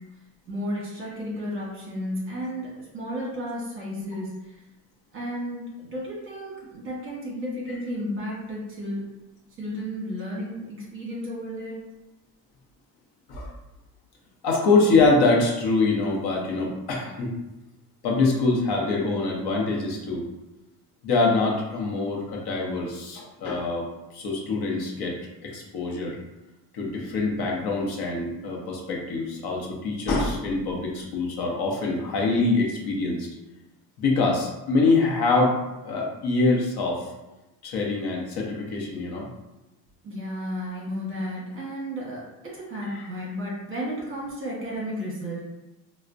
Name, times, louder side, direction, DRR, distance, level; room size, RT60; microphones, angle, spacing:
voice 1, 0.5-4.3 5.1-9.0 9.6-11.8 40.0-42.2 42.5-45.4, equal, 30° right, -5 dB, 1.0 m, -33 dB
voice 2, 14.4-17.3 18.0-20.2 21.0-23.9 24.1-25.1 25.4-26.2 26.7-33.3 34.0-35.6 35.8-37.1 37.6-39.3 42.8-43.1, left 3 dB, 60° left, -1 dB, 0.8 m, -24 dB
4.2 x 2.1 x 2.5 m, 1.0 s
cardioid pair, 170°, 42 cm